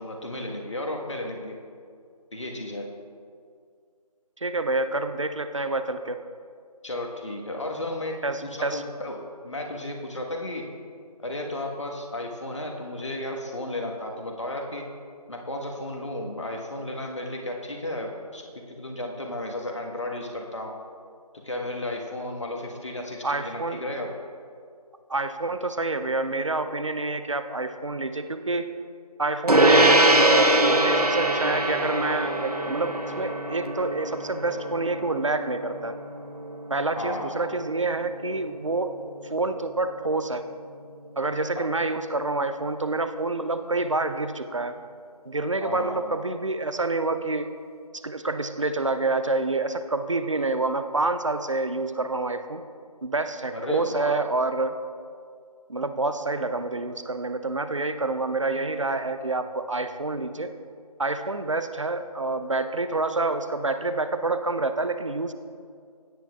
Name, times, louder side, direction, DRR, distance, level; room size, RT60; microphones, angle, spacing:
voice 1, 0.0-1.6 2.3-2.9 6.8-10.7 11.2-14.9 15.3-20.8 21.3-24.1 37.0-37.4 41.5-41.6 45.6-46.2 53.5-54.2, left 1 dB, 50° left, 1 dB, 1.3 m, -34 dB
voice 2, 4.4-6.2 8.2-8.8 23.2-23.8 25.1-28.7 29.2-36.0 36.7-39.0 39.2-40.4 41.2-44.8 45.3-47.5 47.9-52.6 53.0-54.7 55.7-60.5 61.0-65.3, right 2 dB, 50° right, 10 dB, 0.6 m, -27 dB
Gong, 29.5-39.2, right 1 dB, 70° right, 1.1 m, -23 dB
17.0 x 9.2 x 2.3 m, 2.2 s
figure-of-eight pair, 165°, 20 cm